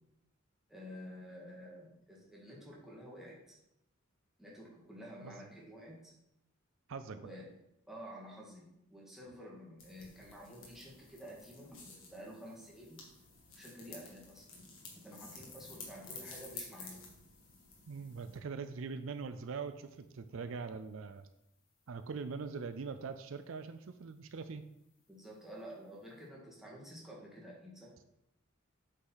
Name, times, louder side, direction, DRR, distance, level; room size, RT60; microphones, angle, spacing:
voice 1, 0.7-3.6 4.4-6.1 7.1-7.5 7.9-13.0 13.6-14.5 15.0-17.0 25.1-28.0, equal, ahead, -4 dB, 2.0 m, -50 dB
voice 2, 6.9-7.3 17.9-21.3 21.9-24.6, right 5 dB, 70° right, 10 dB, 0.4 m, -42 dB
sound 1, 9.8-18.4, left 4 dB, 65° left, 2.1 m, -52 dB
8.3 x 5.6 x 4.0 m, 0.83 s
head